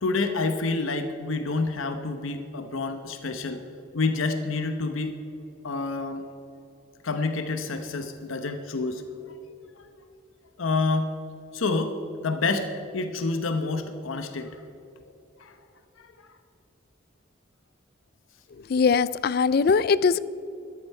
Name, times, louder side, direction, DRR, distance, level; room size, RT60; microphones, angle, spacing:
voice 1, 0.0-3.6 3.9-5.2 5.6-6.3 7.0-9.0 9.3-9.4 9.7-9.8 10.6-11.1 11.5-12.0 12.2-12.7 12.9-14.6 15.4-15.5 16.0-16.1, left 3 dB, 90° left, 7 dB, 0.9 m, -28 dB
voice 2, 18.6-20.2, left 5 dB, 50° left, 18 dB, 0.3 m, -21 dB
13.5 x 12.5 x 4.6 m, 2.7 s
head